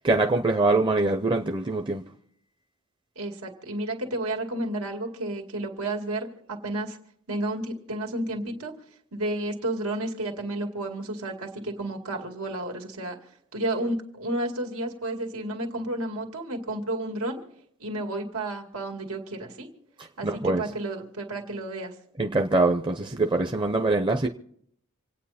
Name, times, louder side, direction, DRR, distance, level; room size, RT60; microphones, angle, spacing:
voice 1, 0.0-2.0 20.0-20.6 22.2-24.3, right 2 dB, 20° right, 0.7 m, -24 dB
voice 2, 3.2-7.0 7.3-8.7 9.1-13.2 13.5-17.4 17.8-19.7 20.2-21.9, right 1 dB, 90° right, 2.3 m, -31 dB
27.0 x 9.1 x 4.2 m
head